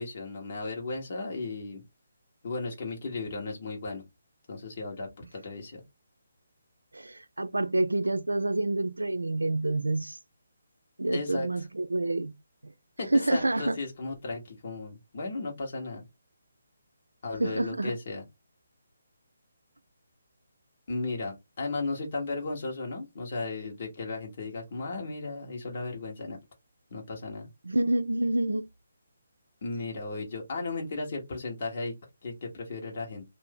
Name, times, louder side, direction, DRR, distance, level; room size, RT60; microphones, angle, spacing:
voice 1, 0.0-1.8 2.4-4.0 4.5-5.8 11.1-11.7 13.0-16.0 17.2-18.2 20.9-26.4 26.9-27.5 29.6-31.9 32.2-33.2, left 3 dB, 50° left, 1.1 m, -35 dB
voice 2, 6.9-10.2 11.0-12.3 12.6-12.7 13.1-13.8 17.4-18.0 27.6-28.7, right 2 dB, 90° right, 0.4 m, -28 dB
2.6 x 2.5 x 3.7 m
figure-of-eight pair, 150°, 0 cm